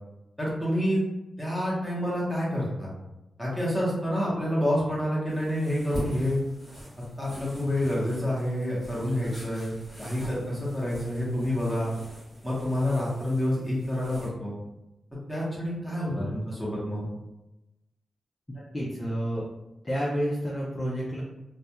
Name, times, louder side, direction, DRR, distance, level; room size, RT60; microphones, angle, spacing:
voice 1, 0.4-1.0 1.4-2.9 3.4-6.4 7.2-9.7 10.0-11.9 12.4-14.5 15.3-17.1, left 1 dB, ahead, -7 dB, 0.8 m, -28 dB
sound 1, 5.3-14.3, equal, 30° right, 1.2 m, -43 dB
voice 2, 18.5-19.5 19.8-21.2, equal, 15° left, -6 dB, 0.4 m, -30 dB
2.2 x 2.2 x 2.8 m, 0.97 s
wide cardioid pair, 175°, 0 cm